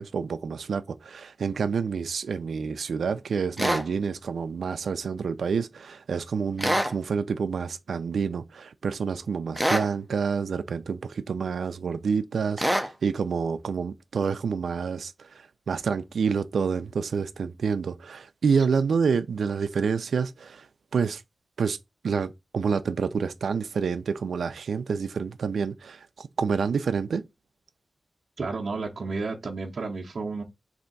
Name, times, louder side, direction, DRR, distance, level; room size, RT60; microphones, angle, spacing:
voice 1, 0.0-20.7 20.9-21.2 21.6-21.8 22.0-27.2, right 5 dB, 90° right, 0.3 m, -28 dB
sound 1, 3.6-3.8 6.6-6.9 9.6-9.9 12.6-12.9, equal, ahead, 0.5 m, -24 dB
voice 2, 28.4-30.4, right 3 dB, 55° right, 0.6 m, -32 dB
3.3 x 2.7 x 3.9 m
wide cardioid pair, 145°, 0 cm